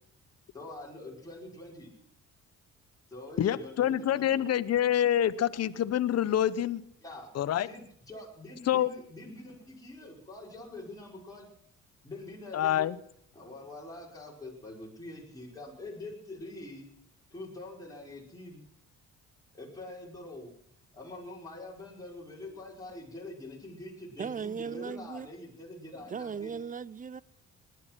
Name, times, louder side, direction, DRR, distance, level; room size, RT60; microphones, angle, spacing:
voice 1, 0.5-1.9 3.1-4.6 7.0-11.5 12.0-13.0 13.3-16.9 17.3-18.6 19.5-20.5 20.9-26.6, left 2 dB, 10° left, 5.2 m, -45 dB
voice 2, 3.4-6.8 7.3-7.7 8.7-8.9 12.5-13.0, left 11 dB, 55° left, 0.9 m, -26 dB
voice 3, 24.2-25.3 26.1-27.2, right 6 dB, 25° right, 0.6 m, -37 dB
19.0 x 11.0 x 6.0 m
cardioid pair, 90°, 30 cm